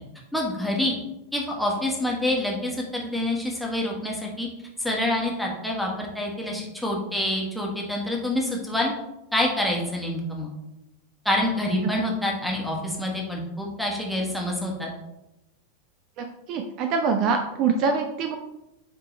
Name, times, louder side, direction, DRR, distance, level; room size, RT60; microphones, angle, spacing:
voice 1, 0.3-0.9 1.3-4.5 4.8-8.9 9.3-10.5 11.2-14.9, left 1 dB, ahead, -1 dB, 1.5 m, -27 dB
voice 2, 16.5-18.4, right 5 dB, 40° right, 6 dB, 0.5 m, -24 dB
8.8 x 3.7 x 3.2 m, 0.90 s
figure-of-eight pair, 90°, 0 cm